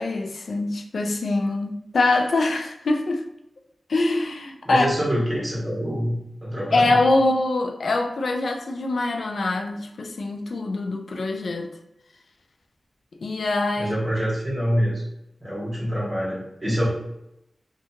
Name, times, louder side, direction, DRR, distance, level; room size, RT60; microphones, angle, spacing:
voice 1, 0.0-3.2 3.9-4.9 6.7-11.7 13.2-13.9, left 2 dB, 80° left, 0.3 m, -23 dB
voice 2, 4.6-7.0 13.8-15.0 15.4-16.9, equal, 25° right, 1.2 m, -26 dB
2.7 x 2.2 x 2.7 m
wide cardioid pair, 80°, 0 cm